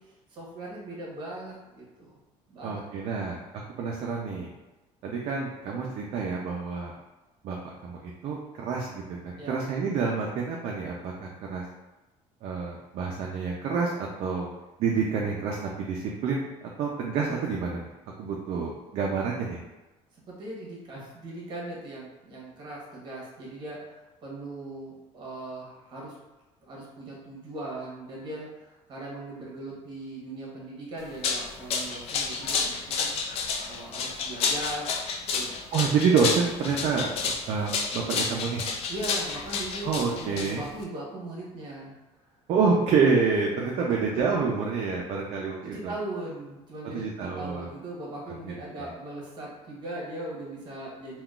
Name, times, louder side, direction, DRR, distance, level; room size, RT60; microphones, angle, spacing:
voice 1, 0.0-2.2 2.5-2.8 9.4-9.6 20.3-26.2 26.7-33.4 33.7-34.9 35.3-35.6 38.9-41.9 45.6-51.2, right 1 dB, 35° right, -4 dB, 1.0 m, -39 dB
voice 2, 2.6-3.4 3.8-4.5 5.0-6.9 7.4-11.6 12.4-14.5 14.8-16.5 16.8-17.9 18.2-19.6 35.7-38.6 39.8-40.6 42.5-45.9 46.9-47.7 48.4-48.9, right 5 dB, 50° right, -2 dB, 0.4 m, -28 dB
sound 1, 31.0-40.8, left 5 dB, 50° left, 0.4 m, -30 dB
3.7 x 2.3 x 2.3 m, 1.1 s
cardioid pair, 160°, 13 cm